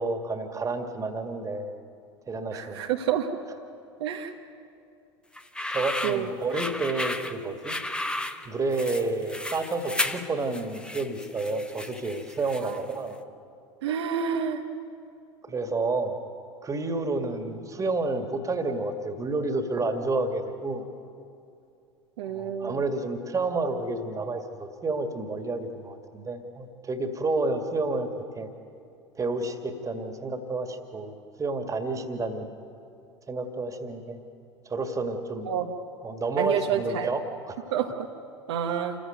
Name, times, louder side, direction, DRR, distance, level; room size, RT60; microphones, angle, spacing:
voice 1, 0.0-1.6 2.3-2.9 5.7-7.8 8.5-13.2 15.4-16.2 16.6-20.9 22.3-28.1 28.4-28.5 29.2-31.1 31.4-32.5 33.3-34.2 34.7-35.5 36.0-37.7, right 3 dB, 20° right, 7 dB, 2.2 m, -30 dB
voice 2, 2.5-3.3 4.0-4.3 6.0-6.3 12.6-12.7 13.8-14.6 22.2-22.8 35.5-35.7 36.4-37.1 37.7-37.9 38.5-38.9, right 9 dB, 65° right, 3 dB, 1.4 m, -28 dB
sound 1, 5.3-12.9, left 1 dB, 5° left, 1.1 m, -33 dB
28.0 x 15.0 x 9.4 m, 2.6 s
figure-of-eight pair, 75°, 15 cm